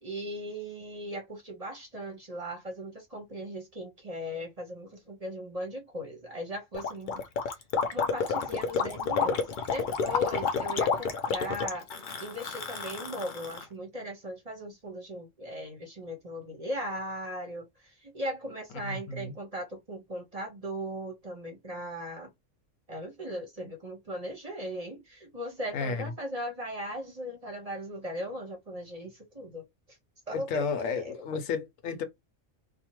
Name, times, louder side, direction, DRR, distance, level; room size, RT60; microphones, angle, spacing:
voice 1, 0.0-7.2 7.9-11.9 12.2-22.3 22.9-29.6 30.3-31.1, equal, 35° right, 0.8 m, -38 dB
Gurgling, 6.7-13.6, left 5 dB, 55° left, 0.5 m, -30 dB
voice 2, 18.8-19.3 25.7-26.0 30.3-32.0, left 5 dB, 80° left, 1.1 m, -32 dB
2.8 x 2.2 x 2.9 m
omnidirectional pair, 1.3 m